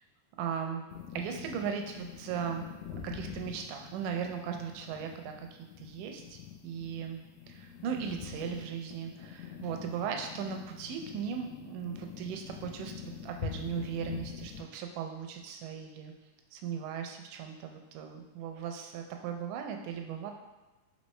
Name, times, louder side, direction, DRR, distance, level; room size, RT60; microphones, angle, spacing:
voice 1, 0.4-0.8 1.2-2.7 3.0-5.5 5.8-12.9 13.2-16.1 16.5-20.3, right 7 dB, 80° right, 4 dB, 1.9 m, -37 dB
sound 1, 0.9-14.6, left 8 dB, 85° left, 2.3 m, -44 dB
5.3 x 3.2 x 3.1 m, 1.1 s
omnidirectional pair, 3.9 m